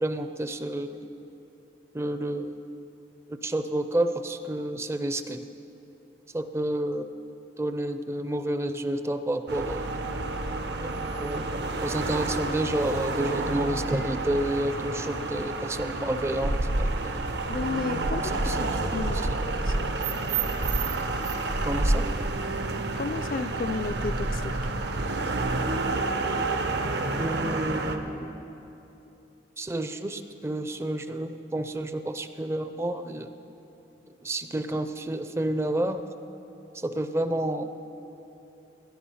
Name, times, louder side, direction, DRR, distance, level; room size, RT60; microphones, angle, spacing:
voice 1, 0.0-1.1 1.9-2.6 3.3-5.4 6.3-7.1 7.6-9.9 10.8-11.5 11.8-17.2 18.2-19.4 21.7-22.1 27.2-28.4 29.6-33.3 34.2-36.0 36.7-37.7, right 1 dB, 15° right, 9 dB, 0.4 m, -30 dB
sound 1, 9.5-28.0, right 2 dB, 65° right, 0.8 m, -29 dB
voice 2, 17.5-18.2 18.9-19.2 19.8-19.9 23.0-24.5, left 4 dB, 50° left, 11 dB, 0.4 m, -32 dB
17.5 x 11.0 x 5.6 m, 3.0 s
head